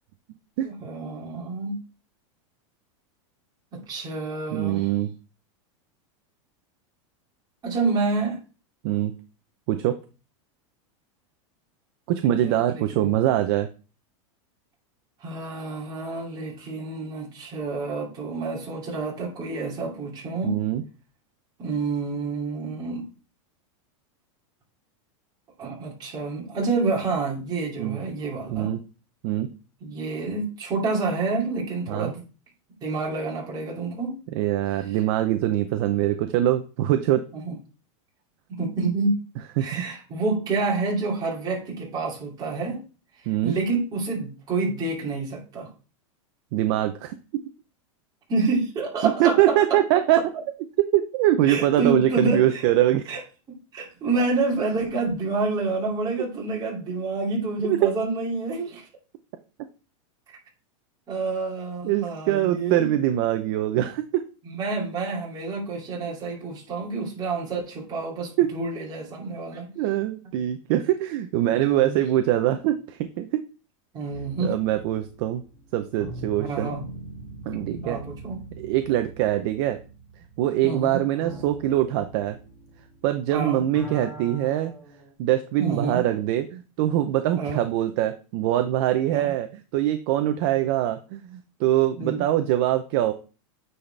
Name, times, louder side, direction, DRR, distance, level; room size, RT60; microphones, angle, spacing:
voice 1, 0.6-1.8 3.7-4.9 7.6-8.4 12.3-13.1 15.2-20.6 21.6-23.0 25.6-28.8 29.8-32.2 32.8-34.1 37.3-37.5 38.5-39.2 39.6-42.8 43.2-45.7 48.3-49.8 51.4-52.6 53.1-53.2 53.7-58.9 61.1-62.9 64.4-69.7 71.5-72.0 73.9-74.5 76.4-76.8 77.8-78.4 80.6-81.0 83.3-83.6 85.6-86.0 87.4-87.6 89.1-89.3 92.0-92.2, right 3 dB, 25° right, -2 dB, 2.6 m, -28 dB
voice 2, 4.5-5.2 8.8-9.2 9.7-10.0 12.1-13.7 20.4-20.8 27.8-28.0 28.5-28.8 29.2-29.5 31.9-32.1 34.3-37.2 39.6-39.9 43.3-43.5 46.5-47.2 49.0-50.3 50.9-53.1 57.7-57.9 61.8-64.3 68.4-68.5 69.8-73.5 74.4-75.4 75.7-76.7 77.5-78.0 78.6-79.8 80.4-82.4 83.0-84.7 85.2-93.1, right 13 dB, 45° right, 8 dB, 0.6 m, -23 dB
sound 1, 74.1-83.3 83.6-85.1, right 1 dB, 5° left, 1.8 m, -42 dB
9.2 x 4.1 x 3.3 m, 0.34 s
supercardioid pair, 155°, 17 cm